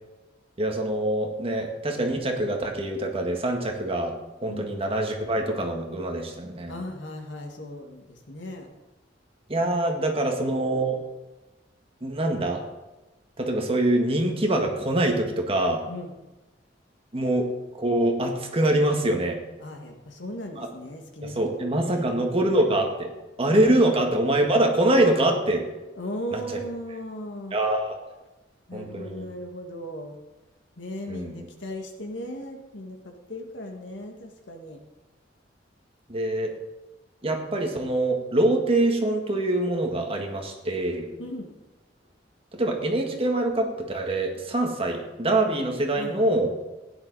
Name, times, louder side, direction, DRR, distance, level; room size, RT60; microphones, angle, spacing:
voice 1, 0.6-4.1 4.4-6.8 9.5-11.0 12.0-12.6 13.4-15.8 17.1-17.5 17.7-19.4 20.6-20.7 21.2-23.1 23.4-25.6 26.3-26.4 27.5-27.8 28.7-29.3 31.1-31.5 36.1-36.5 37.2-41.1 42.5-46.5, right 1 dB, 30° right, 2 dB, 1.8 m, -24 dB
voice 2, 6.7-8.7 10.1-10.2 15.9-16.1 19.6-22.1 23.8-23.9 26.0-27.6 28.7-30.2 30.8-34.8 41.2-41.5 46.0-46.3, equal, 85° left, 3 dB, 2.0 m, -37 dB
15.5 x 10.5 x 4.2 m, 1.1 s
head